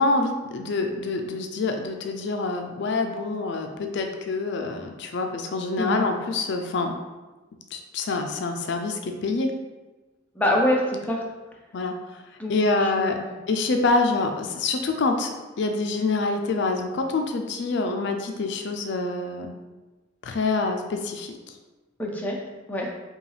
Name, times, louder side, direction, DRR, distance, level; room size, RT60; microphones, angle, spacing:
voice 1, 0.0-6.9 7.7-9.5 11.7-12.2 12.5-13.2 13.5-19.5 20.2-21.4, left 3 dB, 65° left, 4 dB, 0.4 m, -26 dB
voice 2, 10.4-11.2 12.4-12.6 12.8-13.3 22.0-22.4 22.7-22.9, left 1 dB, 10° left, -1 dB, 0.5 m, -25 dB
5.0 x 2.3 x 3.2 m, 1.2 s
head